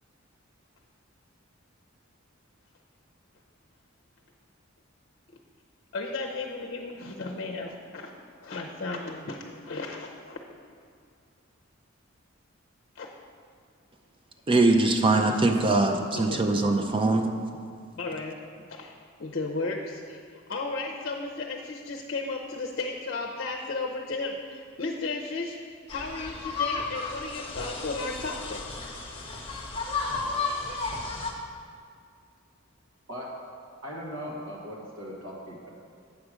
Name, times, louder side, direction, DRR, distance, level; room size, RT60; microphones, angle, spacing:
voice 1, 5.9-8.1 8.4-10.4 12.9-13.1 15.3-15.5 16.1-17.2 18.0-18.4 18.7-18.9 19.2-25.6 25.9-28.6, left 3 dB, 55° left, 1 dB, 0.6 m, -34 dB
voice 2, 14.5-17.3, right 2 dB, 25° right, 5 dB, 0.5 m, -22 dB
sound 1, 25.9-31.3, left 4 dB, 30° left, 1.0 m, -33 dB
voice 3, 33.8-35.7, equal, 80° right, -4 dB, 1.6 m, -38 dB
8.3 x 5.0 x 6.2 m, 2.2 s
head